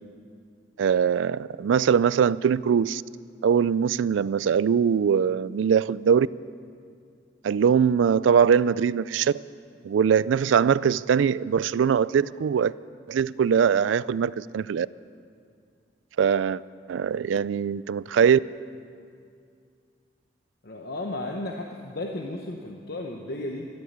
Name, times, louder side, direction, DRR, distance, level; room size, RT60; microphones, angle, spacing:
voice 1, 0.8-3.0 3.4-6.3 7.4-9.3 9.8-12.7 13.1-14.9 16.2-16.6 16.9-18.4, right 7 dB, 85° right, 20 dB, 0.3 m, -22 dB
voice 2, 20.6-23.7, left 1 dB, 55° left, 1 dB, 1.0 m, -34 dB
14.0 x 12.5 x 7.9 m, 2.3 s
head